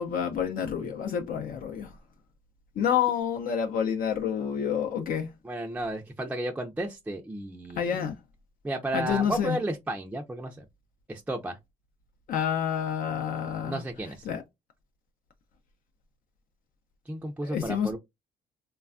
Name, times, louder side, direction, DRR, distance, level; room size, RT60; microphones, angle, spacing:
voice 1, 0.0-2.0 2.8-5.3 7.8-8.2 8.9-9.6 12.3-13.8 14.3-14.4 17.4-17.9, left 8 dB, 65° left, 0.6 m, -28 dB
voice 2, 5.4-8.1 8.6-10.7 11.1-11.6 13.6-14.3 17.1-18.0, right 1 dB, 10° right, 0.4 m, -33 dB
3.2 x 2.2 x 2.4 m
cardioid pair, 95°, 16 cm